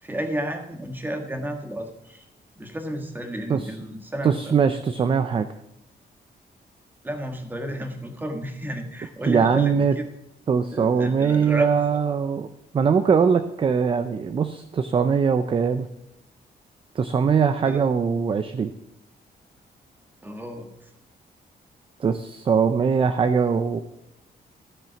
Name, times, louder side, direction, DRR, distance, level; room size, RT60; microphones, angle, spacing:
voice 1, 0.0-2.2 2.6-4.4 7.0-10.1 10.7-11.8 17.6-17.9 20.2-20.9, right 1 dB, 10° right, 4 dB, 1.5 m, -32 dB
voice 2, 4.2-5.5 9.2-9.9 10.5-12.5 12.7-15.9 16.9-18.7 22.0-23.8, right 6 dB, 30° right, 10 dB, 0.5 m, -21 dB
13.5 x 7.4 x 5.8 m, 0.83 s
wide cardioid pair, 180°, 17 cm